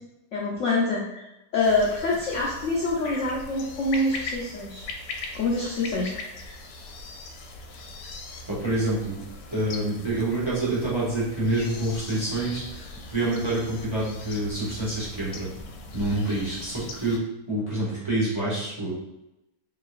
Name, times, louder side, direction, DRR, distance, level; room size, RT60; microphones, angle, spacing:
voice 1, 0.3-1.3 1.5-4.9 5.3-6.6, left 2 dB, 60° left, -5 dB, 0.8 m, -26 dB
sound 1, 1.6-17.2, left 3 dB, 85° left, 1.3 m, -40 dB
voice 2, 8.5-9.2 9.5-15.5 15.9-17.2 17.5-18.9, right 1 dB, 15° right, -8 dB, 1.3 m, -27 dB
5.0 x 3.2 x 2.4 m, 0.93 s
omnidirectional pair, 1.9 m